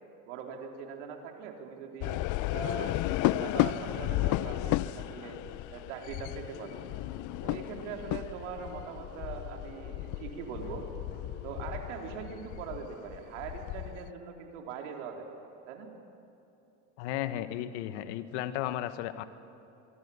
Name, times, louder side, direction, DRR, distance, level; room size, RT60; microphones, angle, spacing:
voice 1, 0.3-2.2 2.5-5.4 5.7-6.8 7.4-10.9 11.4-15.9, right 6 dB, 80° right, 2 dB, 3.6 m, -42 dB
sound 1, 2.0-14.1, left 16 dB, 55° left, 0.7 m, -34 dB
sound 2, 6.4-11.9, left 1 dB, 30° left, 6.8 m, -51 dB
voice 2, 17.0-19.2, left 12 dB, 75° left, 11 dB, 1.5 m, -34 dB
24.5 x 24.5 x 7.0 m, 2.9 s
hypercardioid pair, 80°, 36 cm